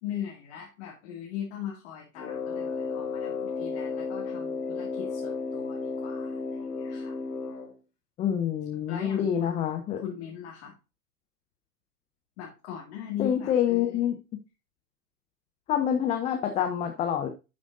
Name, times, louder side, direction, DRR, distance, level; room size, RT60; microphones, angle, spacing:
voice 1, 0.0-6.4 6.8-7.2 8.9-9.7 10.0-10.7 12.4-14.0, left 9 dB, 40° left, -1 dB, 2.5 m, -39 dB
Brass instrument, 2.2-7.8, left 4 dB, 75° left, 1.6 m, -33 dB
voice 2, 8.2-10.0 13.2-14.2 15.7-17.3, left 9 dB, 15° left, 5 dB, 0.6 m, -27 dB
12.0 x 5.1 x 2.6 m, 0.28 s
figure-of-eight pair, 110°, 48 cm